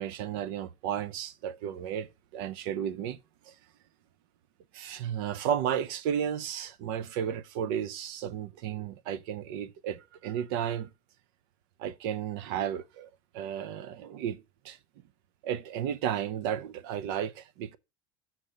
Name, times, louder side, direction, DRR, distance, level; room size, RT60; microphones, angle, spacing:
voice 1, 0.0-3.2 3.5-3.6 4.7-10.9 11.8-14.8 15.4-17.8, right 9 dB, 75° right, 0.7 m, -33 dB
5.9 x 5.6 x 6.4 m
cardioid pair, 135°, 12 cm